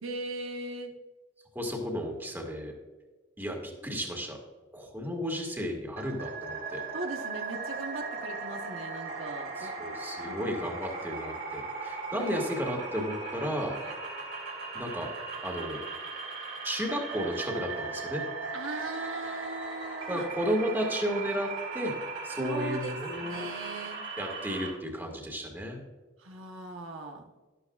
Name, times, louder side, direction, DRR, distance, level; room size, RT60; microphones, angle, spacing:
voice 1, 0.0-0.9 6.9-9.7 10.2-10.5 12.1-12.3 13.2-13.4 13.8-14.0 18.5-20.3 22.4-22.9 23.2-24.0 26.2-27.2, right 2 dB, 85° right, 2 dB, 1.1 m, -39 dB
voice 2, 1.6-2.7 3.4-4.4 4.7-6.8 9.6-13.8 14.7-15.1 15.4-15.8 16.6-18.2 20.1-21.5 21.7-21.9 22.2-23.5 24.2-25.8, equal, 10° right, 1 dB, 1.9 m, -33 dB
sound 1, 6.0-24.7, right 3 dB, 60° right, 3.2 m, -38 dB
12.5 x 12.0 x 2.4 m, 1.3 s
head